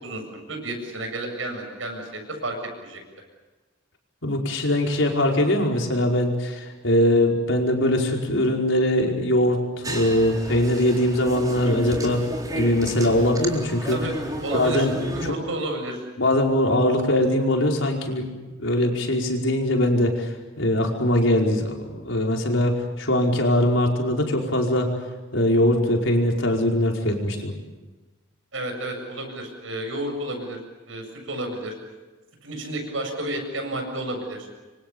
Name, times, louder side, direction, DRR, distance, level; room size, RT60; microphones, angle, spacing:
voice 1, 0.0-2.6 2.8-3.0 13.9-14.1 14.4-14.9 15.1-16.0 28.5-30.6 30.9-31.7 32.4-34.5, right 1 dB, 90° right, 4 dB, 7.5 m, -31 dB
voice 2, 4.2-12.2 12.5-14.0 14.5-15.4 16.2-18.3 18.6-24.9 25.3-27.5, left 1 dB, 80° left, 1 dB, 5.1 m, -22 dB
sound 1, 9.8-15.3, right 1 dB, 20° right, 3.9 m, -33 dB
27.5 x 24.5 x 7.0 m, 1.2 s
head